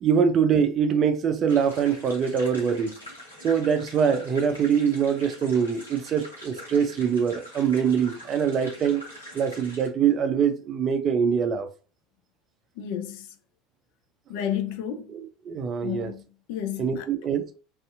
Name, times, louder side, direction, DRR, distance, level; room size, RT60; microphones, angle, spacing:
voice 1, 0.0-2.9 3.4-9.1 9.3-11.7 15.1-15.2 15.5-16.1 16.8-17.4, right 7 dB, 40° right, 0.4 m, -23 dB
sound 1, 1.5-9.9, left 1 dB, 90° left, 1.0 m, -44 dB
voice 2, 12.8-13.3 14.3-15.1 15.8-16.2 16.5-17.1, left 9 dB, 60° left, 0.4 m, -31 dB
2.6 x 2.4 x 2.3 m
figure-of-eight pair, 70°, 0 cm